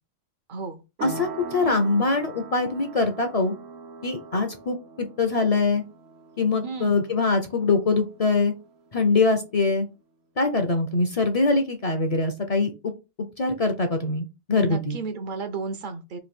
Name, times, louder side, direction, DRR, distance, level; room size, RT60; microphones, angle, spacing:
voice 1, 0.5-0.8 6.6-7.0 14.6-16.2, right 4 dB, 60° right, 8 dB, 0.6 m, -33 dB
voice 2, 1.0-3.5 4.0-5.8 6.4-8.5 8.9-9.9 10.4-12.9 13.4-15.0, left 3 dB, 45° left, 6 dB, 0.5 m, -23 dB
sound 1, 1.0-9.3, right 3 dB, 80° right, 1.1 m, -42 dB
3.2 x 2.5 x 4.1 m, 0.28 s
omnidirectional pair, 1.1 m